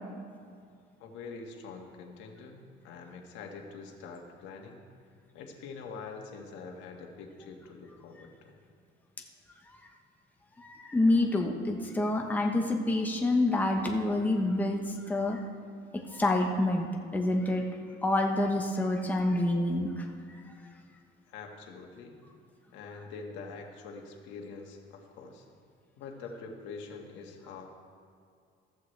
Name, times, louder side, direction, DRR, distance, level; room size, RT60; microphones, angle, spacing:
voice 1, 1.0-4.8 5.3-8.6 21.3-22.2 22.7-25.5 26.0-27.7, left 4 dB, 85° left, 2 dB, 1.8 m, -45 dB
voice 2, 10.6-15.4 16.1-17.7 18.0-20.4, left 2 dB, 10° left, 1 dB, 1.0 m, -27 dB
14.5 x 14.0 x 3.3 m, 2.3 s
cardioid pair, 140°, 19 cm